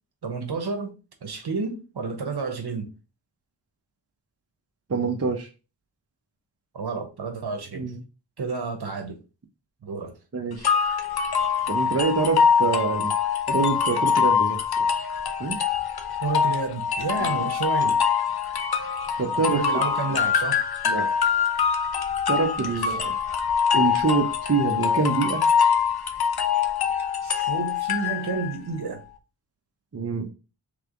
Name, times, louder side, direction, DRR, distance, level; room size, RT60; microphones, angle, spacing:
voice 1, 0.2-0.9 1.2-2.9 6.7-7.9 8.4-9.2 9.8-10.1 16.2-18.0 19.5-20.6 22.6-22.7 27.2-29.0, right 4 dB, 60° right, 1.1 m, -30 dB
voice 2, 4.9-5.5 7.7-8.0 10.3-10.7 11.7-13.1 13.5-14.6 15.4-15.6 17.2-17.4 19.2-19.6 20.8-21.1 22.3-23.1 23.7-25.4 29.9-30.3, right 4 dB, 35° right, 0.8 m, -25 dB
sound 1, 10.6-28.6, left 7 dB, 60° left, 0.7 m, -24 dB
3.4 x 3.3 x 3.8 m
cardioid pair, 60°, 44 cm